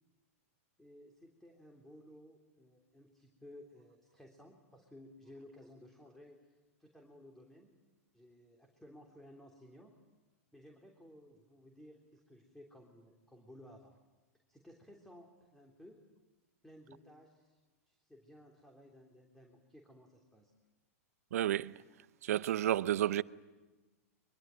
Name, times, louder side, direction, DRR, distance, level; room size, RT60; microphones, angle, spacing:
voice 1, 0.8-7.8 8.1-9.9 10.5-14.0 14.5-16.0 16.6-17.6 17.9-20.5, left 1 dB, 5° left, 3.4 m, -57 dB
voice 2, 21.3-21.7 22.2-23.2, right 12 dB, 75° right, 0.7 m, -31 dB
23.5 x 23.0 x 9.0 m
hypercardioid pair, 115°, 8 cm